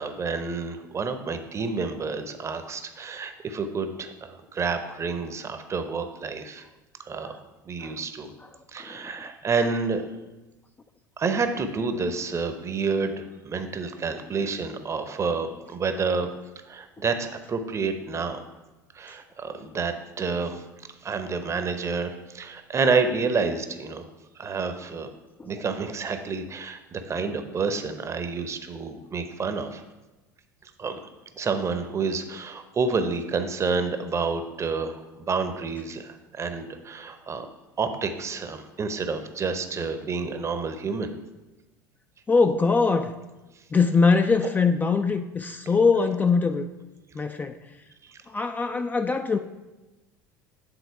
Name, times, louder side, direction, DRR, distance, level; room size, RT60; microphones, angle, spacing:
voice 1, 0.0-6.7 7.0-7.4 7.7-8.3 8.7-10.0 11.2-16.3 16.7-18.4 18.9-20.6 21.0-24.0 24.4-25.1 25.4-29.8 30.8-31.0 31.4-37.5 37.8-41.1 48.0-48.2, right 4 dB, 30° right, 8 dB, 0.7 m, -29 dB
voice 2, 42.3-43.1 43.7-46.7 47.1-47.6 48.3-49.4, left 4 dB, 15° left, 7 dB, 0.3 m, -22 dB
9.0 x 3.9 x 4.6 m, 1.1 s
figure-of-eight pair, 70°, 10 cm